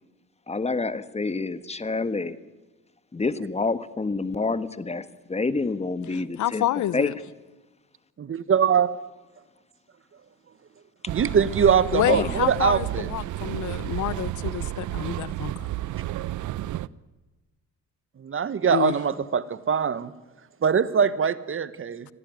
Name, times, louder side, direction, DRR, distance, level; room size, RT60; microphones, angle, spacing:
voice 1, 0.5-2.4 3.1-6.6 6.9-7.1 12.0-12.4, left 3 dB, 20° left, 1.4 m, -28 dB
voice 2, 6.1-7.2 11.9-15.5 18.7-18.9, left 13 dB, 75° left, 0.9 m, -28 dB
voice 3, 8.2-8.9 11.1-13.1 18.2-20.1 20.6-22.1, right 7 dB, 45° right, 1.5 m, -22 dB
sound 1, 11.1-16.9, right 15 dB, 80° right, 0.7 m, -31 dB
25.5 x 17.5 x 9.4 m
cardioid pair, 90°, 30 cm